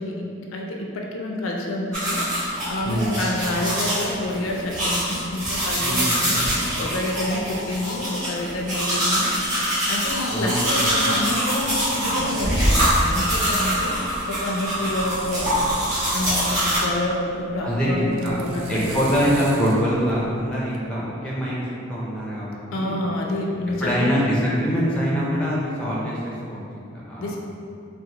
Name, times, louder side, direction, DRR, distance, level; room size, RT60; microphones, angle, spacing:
voice 1, 0.0-6.5 6.8-9.3 9.9-15.8 16.1-19.3 22.7-24.1 27.2-27.4, left 1 dB, 80° left, 0 dB, 0.4 m, -28 dB
sound 1, 1.9-16.8, equal, 35° right, 1.3 m, -24 dB
voice 2, 5.8-6.4 10.3-10.6 17.6-18.4 18.7-21.6 21.9-23.0 23.8-27.4, equal, 5° left, -7 dB, 0.4 m, -24 dB
sound 2, 10.5-20.8, right 3 dB, 80° right, 0.3 m, -39 dB
3.8 x 2.1 x 2.8 m, 2.6 s
head